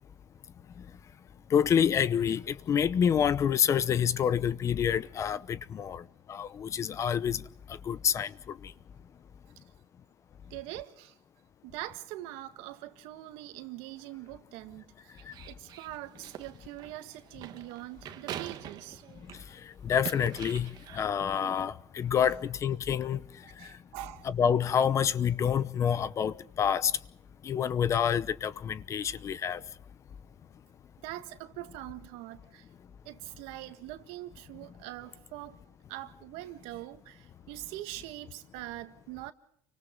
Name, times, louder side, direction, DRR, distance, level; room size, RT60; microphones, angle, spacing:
voice 1, 1.5-6.0 6.3-7.4 7.9-8.3 19.8-23.2 24.3-26.9 27.4-29.6, left 8 dB, 30° left, 0.8 m, -27 dB
voice 2, 10.5-11.2 11.6-19.0 22.3-22.4 23.4-24.3 31.0-32.7 33.1-35.6 35.9-39.3, right 16 dB, 75° right, 1.8 m, -43 dB
sound 1, 15.2-19.5 19.9-21.2, right 11 dB, 45° right, 1.4 m, -44 dB
29.5 x 25.0 x 3.8 m
cardioid pair, 145°, 10 cm